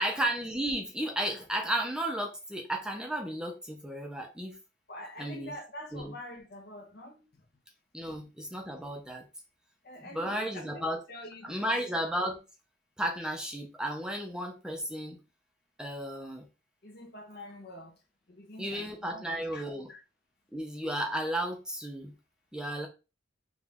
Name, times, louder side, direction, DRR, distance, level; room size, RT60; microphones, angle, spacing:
voice 1, 0.0-4.6 5.2-5.5 5.9-6.1 7.9-9.2 10.0-11.0 11.4-12.4 13.0-15.2 15.8-16.5 18.6-19.9 20.5-22.1 22.5-22.9, right 1 dB, 5° right, 0.7 m, -33 dB
voice 2, 4.9-7.3 8.1-8.3 9.8-11.7 16.8-18.0 18.3-19.6 19.9-20.0, left 1 dB, 55° left, 1.1 m, -46 dB
4.9 x 2.6 x 3.5 m
head